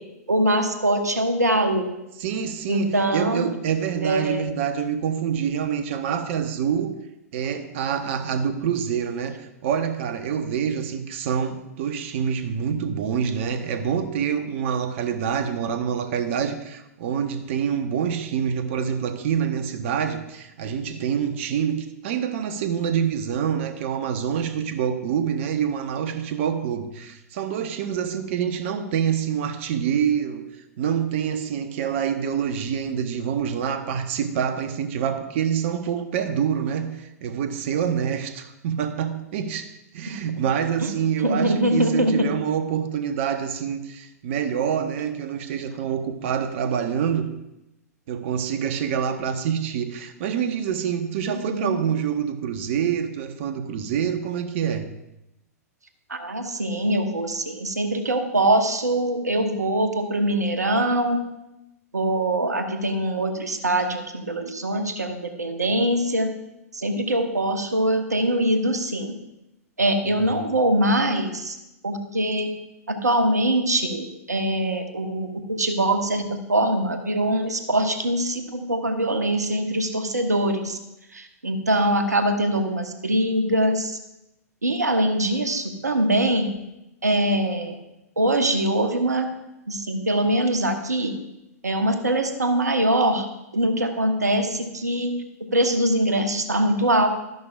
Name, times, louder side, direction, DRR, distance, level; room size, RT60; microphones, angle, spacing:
voice 1, 0.3-1.9 2.7-3.5 4.0-4.5 40.1-40.2 40.8-40.9 41.2-42.3 51.4-51.8 56.1-61.2 61.9-66.3 66.7-69.1 69.8-71.6 71.8-72.5 72.9-76.2 76.5-80.8 81.1-84.0 84.6-86.6 87.0-87.8 88.2-89.2 89.7-91.1 91.6-93.3 93.5-95.2 95.5-97.1, right 1 dB, 85° right, 7 dB, 1.1 m, -23 dB
voice 2, 2.2-6.9 7.3-30.4 30.8-47.3 48.1-54.9 70.0-70.6, right 8 dB, 50° right, 9 dB, 1.1 m, -26 dB
13.0 x 11.0 x 2.5 m, 0.90 s
figure-of-eight pair, 110°, 9 cm